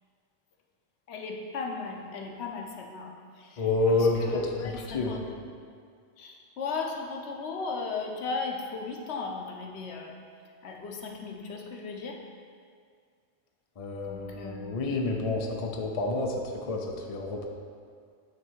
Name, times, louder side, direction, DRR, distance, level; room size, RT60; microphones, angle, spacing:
voice 1, 1.1-5.4 6.2-10.1 10.6-12.2 14.1-15.3, left 4 dB, 90° left, 1 dB, 1.0 m, -37 dB
voice 2, 3.6-4.4 4.9-5.2 13.8-17.5, left 3 dB, 40° left, 1 dB, 0.7 m, -29 dB
9.4 x 3.2 x 4.6 m, 2.1 s
omnidirectional pair, 1.1 m